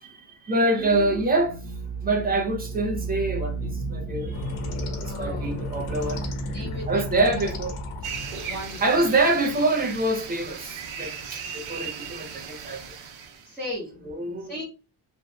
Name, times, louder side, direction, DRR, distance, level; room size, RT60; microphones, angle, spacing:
voice 1, 0.0-1.6 2.0-3.6 3.9-4.4 5.2-6.2 6.9-7.7 8.8-12.8 14.0-14.5, right 2 dB, 20° right, 0.6 m, -25 dB
voice 2, 0.6-1.2 5.0-5.7 6.5-7.5 8.4-9.1 13.4-14.6, left 1 dB, 5° left, 1.4 m, -37 dB
sound 1, 0.8-9.5, right 3 dB, 20° left, 0.9 m, -34 dB
sound 2, 4.3-10.3, left 2 dB, 85° left, 0.9 m, -36 dB
sound 3, 8.0-13.5, right 6 dB, 80° right, 0.9 m, -37 dB
3.3 x 2.7 x 2.2 m
cardioid pair, 165°, 48 cm